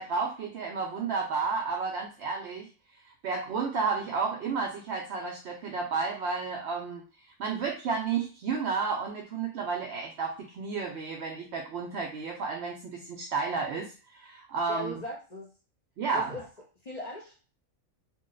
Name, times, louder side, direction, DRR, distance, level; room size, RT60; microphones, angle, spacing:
voice 1, 0.0-2.7 3.2-7.0 7.4-14.9 16.0-16.4, right 5 dB, 65° right, 1 dB, 0.8 m, -32 dB
voice 2, 14.7-15.5 16.1-16.4 16.8-17.4, left 2 dB, 45° left, -2 dB, 0.6 m, -39 dB
2.6 x 2.1 x 3.8 m, 0.36 s
omnidirectional pair, 1.4 m